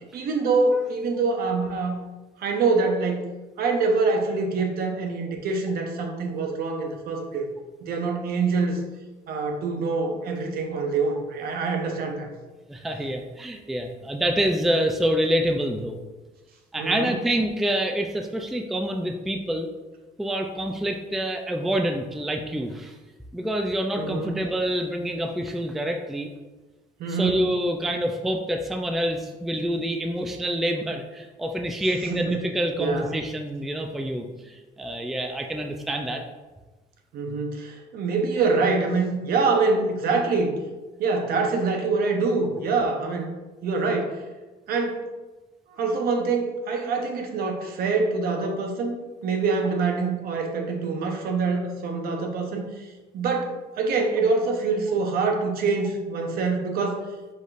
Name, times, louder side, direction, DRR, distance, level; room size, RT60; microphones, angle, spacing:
voice 1, 0.1-2.0 2.4-3.3 3.6-7.5 7.8-8.8 9.3-12.3 16.8-17.1 24.0-24.4 27.0-27.4 32.1-32.5 32.8-33.1 37.1-40.6 41.0-43.3 43.6-44.2 44.7-45.0 45.8-49.0 49.2-57.1, right 4 dB, 65° right, 3 dB, 0.8 m, -25 dB
voice 2, 12.7-16.0 16.7-19.7 20.2-23.0 23.3-26.3 27.1-36.2, right 1 dB, ahead, 4 dB, 0.3 m, -27 dB
5.1 x 4.0 x 2.5 m, 1.2 s
cardioid pair, 110°, 17 cm